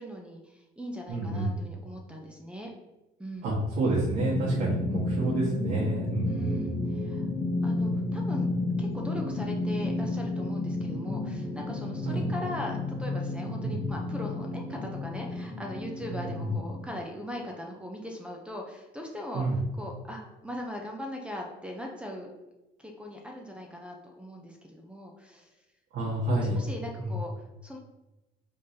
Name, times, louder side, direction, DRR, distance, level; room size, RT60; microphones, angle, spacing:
voice 1, 0.0-2.7 3.2-3.5 6.3-7.3 7.6-8.5 8.8-19.5 19.8-22.3 22.8-25.5 26.0-27.8, left 1 dB, 5° right, 1 dB, 0.7 m, -40 dB
voice 2, 1.1-1.6 3.4-6.6 12.0-12.2 13.6-13.8 16.1-16.5 19.3-19.5 25.9-26.6 27.0-27.1, right 2 dB, 75° right, -8 dB, 1.6 m, -29 dB
sound 1, 4.2-16.9, left 2 dB, 35° left, 0.8 m, -32 dB
4.8 x 3.6 x 2.8 m, 1.0 s
cardioid pair, 110°, 17 cm